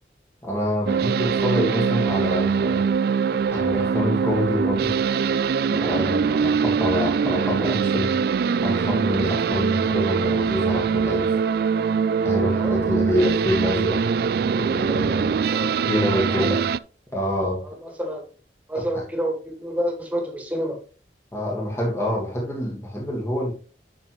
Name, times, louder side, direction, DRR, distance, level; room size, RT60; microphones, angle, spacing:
voice 1, 0.4-2.8 3.5-4.9 5.7-8.1 8.6-11.3 12.2-14.0 14.5-15.4 15.9-16.6 17.1-17.6 18.8-18.9 21.3-23.5, equal, 15° left, -2 dB, 1.7 m, -26 dB
sound 1, 0.9-16.8, right 6 dB, 60° right, 0.3 m, -23 dB
voice 2, 15.1-16.6 17.6-18.3 18.7-20.8, equal, 10° right, 2 dB, 1.9 m, -29 dB
9.9 x 6.1 x 3.1 m, 0.38 s
head